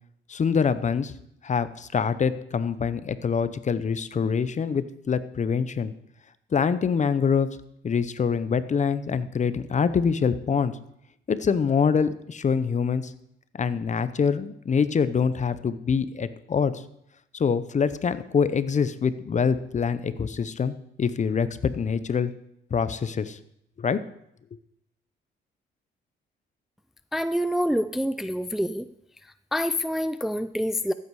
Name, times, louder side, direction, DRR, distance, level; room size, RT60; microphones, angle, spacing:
voice 1, 0.3-1.1 1.4-5.9 6.5-7.5 7.8-10.8 11.3-13.1 13.6-16.8 17.3-22.3 22.7-23.4 23.8-24.0, left 6 dB, 35° left, 14 dB, 0.8 m, -25 dB
voice 2, 27.1-28.9 29.5-30.9, equal, ahead, 12 dB, 0.4 m, -26 dB
14.5 x 8.4 x 4.8 m, 0.77 s
cardioid pair, 90°, 20 cm